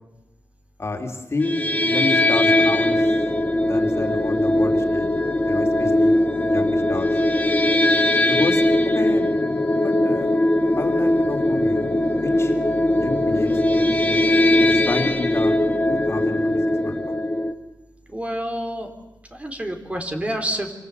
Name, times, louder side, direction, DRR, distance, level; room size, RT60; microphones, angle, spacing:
voice 1, 0.8-3.1 3.6-5.1 5.4-7.1 8.3-8.6 8.9-9.3 9.7-10.3 10.8-12.5 12.9-14.2 14.6-15.6 15.9-17.1, left 3 dB, 35° left, 4 dB, 3.4 m, -30 dB
sound 1, 1.4-17.5, left 1 dB, 20° left, 2.0 m, -20 dB
voice 2, 18.1-18.9 19.3-20.7, equal, 15° right, 4 dB, 3.6 m, -28 dB
26.5 x 26.5 x 8.3 m, 0.94 s
wide cardioid pair, 110°, 7 cm